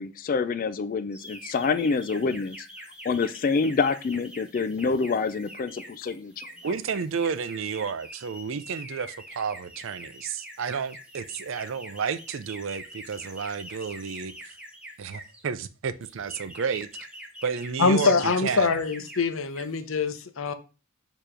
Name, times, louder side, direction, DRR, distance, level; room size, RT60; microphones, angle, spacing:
voice 1, 0.0-2.6 3.0-6.5, left 4 dB, 40° left, 0.4 m, -27 dB
sound 1, 1.1-15.4 16.0-19.2 19.5-19.8, equal, 5° right, 1.1 m, -44 dB
voice 2, 6.6-14.6 15.0-16.9 17.4-18.7, right 6 dB, 65° right, 0.4 m, -31 dB
voice 3, 17.8-20.5, left 4 dB, 70° left, 0.7 m, -24 dB
6.7 x 3.0 x 4.9 m
head